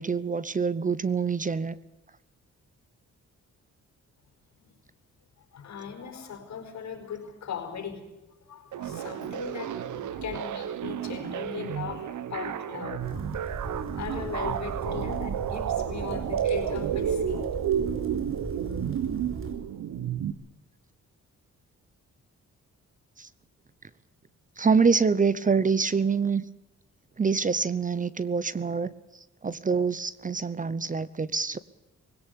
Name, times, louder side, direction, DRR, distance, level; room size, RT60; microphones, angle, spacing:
voice 1, 0.0-1.8 23.2-23.3 24.6-26.4 27.2-31.6, right 5 dB, 25° right, 18 dB, 0.8 m, -26 dB
voice 2, 5.5-8.0 8.3-13.2 13.7-17.5 18.6-18.9, left 7 dB, 65° left, 5 dB, 5.1 m, -38 dB
sound 1, 8.7-20.3, right 9 dB, 85° right, 1.3 m, -31 dB
sound 2, 13.0-19.5, right 3 dB, 45° right, 4.8 m, -38 dB
20.5 x 17.5 x 8.3 m, 1.0 s
cardioid pair, 110°, 29 cm